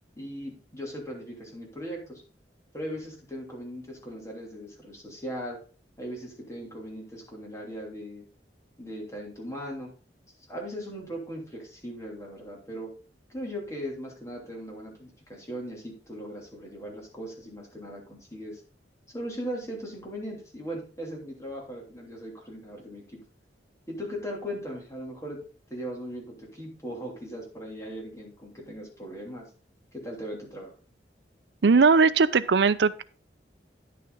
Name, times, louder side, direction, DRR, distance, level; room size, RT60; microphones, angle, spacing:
voice 1, 0.2-2.2 2.7-5.6 6.0-8.3 8.8-9.9 10.5-12.9 13.3-18.6 19.1-23.2 23.9-25.4 25.7-29.5 29.9-30.7, equal, 15° left, -1 dB, 3.0 m, -38 dB
voice 2, 31.6-33.0, right 4 dB, 70° right, 15 dB, 0.5 m, -19 dB
10.5 x 6.6 x 4.0 m, 0.37 s
head